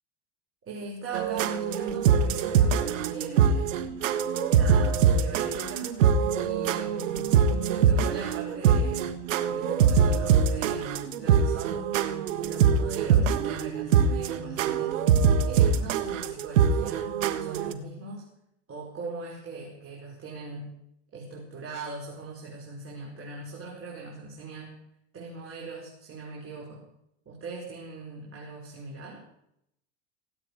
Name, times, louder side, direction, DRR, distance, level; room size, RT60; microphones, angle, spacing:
voice 1, 0.6-4.0 4.5-5.9 6.4-9.1 9.5-14.9 15.5-17.1 17.4-18.2 18.7-20.7 21.1-24.8 25.1-26.8 27.2-29.2, right 3 dB, 35° right, -3 dB, 5.1 m, -40 dB
sound 1, 1.1-17.7, right 7 dB, 85° right, 1.5 m, -23 dB
17.5 x 8.9 x 8.8 m, 0.78 s
supercardioid pair, 100°, 37 cm